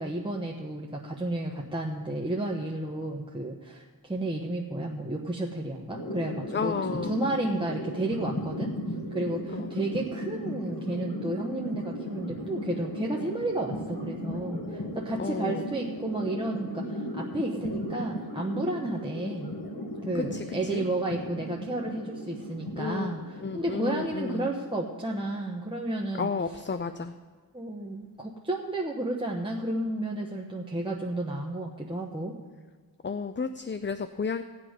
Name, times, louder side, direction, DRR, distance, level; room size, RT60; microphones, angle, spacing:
voice 1, 0.0-8.7 9.1-19.6 20.0-26.3 27.5-32.4, right 1 dB, 10° right, -2 dB, 1.1 m, -32 dB
sound 1, 5.9-25.4, equal, 55° left, 2.0 m, -36 dB
voice 2, 6.5-7.1 9.5-9.7 15.2-15.6 20.3-20.4 20.7-20.8 22.8-24.5 26.2-27.1 33.0-34.4, left 5 dB, 30° left, 10 dB, 0.5 m, -32 dB
16.5 x 8.5 x 5.1 m, 1.4 s
wide cardioid pair, 60°, 41 cm